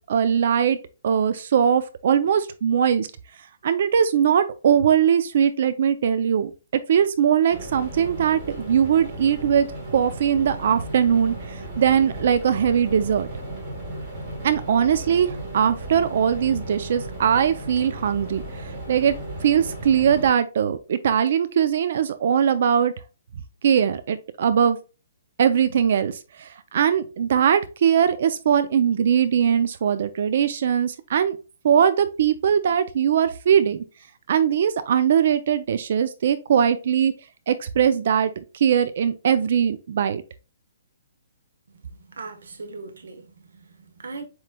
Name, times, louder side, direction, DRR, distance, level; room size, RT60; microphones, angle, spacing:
voice 1, 0.1-0.8 1.0-3.1 3.6-6.5 6.9-13.3 14.4-18.4 18.9-19.1 19.4-22.9 23.6-24.8 25.4-31.4 31.6-33.8 34.3-37.1 37.5-40.2, right 8 dB, 50° right, 0.4 m, -21 dB
sound 1, 7.5-20.3, right 1 dB, 20° right, 1.8 m, -35 dB
voice 2, 41.7-44.2, right 3 dB, 80° right, 1.1 m, -40 dB
7.3 x 3.1 x 2.2 m
hypercardioid pair, 170°, 0 cm